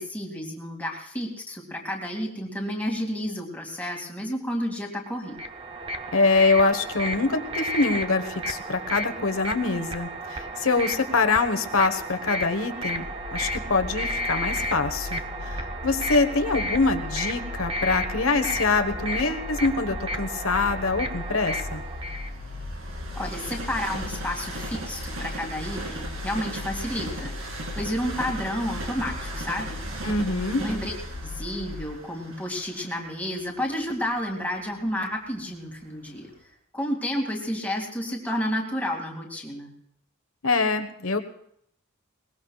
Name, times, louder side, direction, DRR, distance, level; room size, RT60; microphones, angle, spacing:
voice 1, 0.0-5.4 23.1-29.8 30.6-30.9 31.2-36.3 36.7-39.7, equal, 5° left, 0 dB, 2.5 m, -31 dB
sound 1, 5.2-22.3, right 1 dB, 25° right, 0.8 m, -33 dB
voice 2, 6.1-13.1 13.3-21.8 30.0-30.6 40.4-41.2, left 3 dB, 85° left, 7 dB, 1.4 m, -24 dB
sound 2, 13.0-31.8, left 2 dB, 60° right, 4.1 m, -37 dB
Train, 19.7-35.6 36.2-36.3, right 2 dB, 80° right, 2.5 m, -39 dB
21.5 x 20.5 x 2.4 m, 0.69 s
head